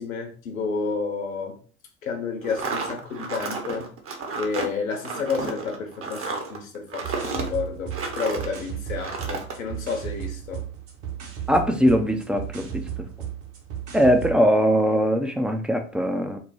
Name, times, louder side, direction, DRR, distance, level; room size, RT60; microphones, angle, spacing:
voice 1, 0.0-1.6 2.0-3.9 4.4-10.6, left 5 dB, 80° left, 1.1 m, -30 dB
sound 1, 2.4-8.6 9.0-9.6, right 4 dB, 35° right, 1.0 m, -32 dB
sound 2, 7.0-14.4, right 10 dB, 65° right, 1.5 m, -35 dB
voice 2, 11.5-12.8 13.9-16.4, equal, ahead, 0.6 m, -21 dB
4.7 x 2.2 x 4.2 m
hypercardioid pair, 75°, 40 cm